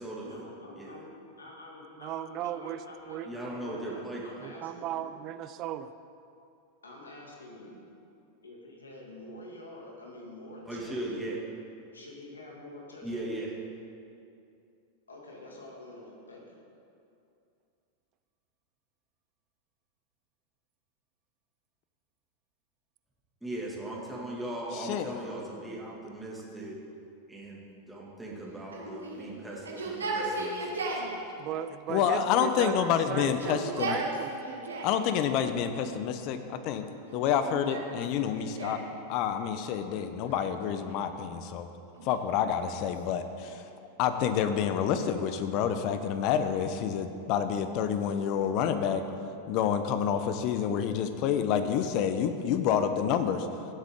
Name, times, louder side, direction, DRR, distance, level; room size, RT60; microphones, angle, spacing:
voice 1, 0.2-1.1 1.4-5.1 6.8-7.8 8.4-11.0 11.9-13.4 15.1-16.6, left 2 dB, 90° left, -2 dB, 2.4 m, -47 dB
voice 2, 2.0-2.8 3.1-3.3 4.4-5.9 31.4-34.4, right 11 dB, 45° right, 12 dB, 0.5 m, -36 dB
voice 3, 3.2-4.4 10.7-11.4 13.0-13.5 23.4-26.8 27.3-31.5, right 1 dB, 5° right, -5 dB, 2.3 m, -38 dB
voice 4, 24.7-25.2 31.9-34.0 34.8-36.9 37.1-38.8 39.1-41.7 42.0-43.6 44.0-49.0 49.5-53.5, left 8 dB, 50° left, 9 dB, 0.9 m, -28 dB
Yell, 28.7-31.1 32.0-32.7 33.1-35.0 35.7-36.4 37.1-38.9 40.3-41.1 42.0-43.7, right 2 dB, 85° right, 1.7 m, -37 dB
16.0 x 7.7 x 3.8 m, 2.6 s
hypercardioid pair, 100°, 0 cm